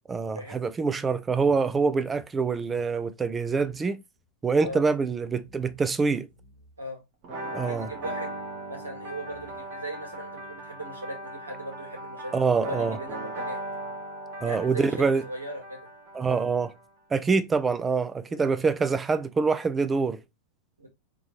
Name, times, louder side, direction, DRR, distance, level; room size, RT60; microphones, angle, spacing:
voice 1, 0.1-4.0 4.4-6.3 7.5-7.9 12.3-13.0 14.4-15.2 16.1-16.7 17.1-20.2, right 4 dB, 15° right, 0.5 m, -25 dB
sound 1, 1.4-3.9 4.2-4.3 4.5-4.8 5.4-5.9 6.2-6.8 7.7-8.1 8.9-9.0 9.3-9.9, right 3 dB, 60° right, 1.6 m, -55 dB
sound 2, 7.2-16.8, right 1 dB, 45° right, 1.5 m, -38 dB
voice 2, 7.4-8.3 8.7-12.3 12.6-13.6 14.4-15.9 18.3-18.5 20.8-20.9, right 1 dB, 80° right, 2.1 m, -38 dB
5.1 x 3.1 x 3.3 m
figure-of-eight pair, 90°, 0 cm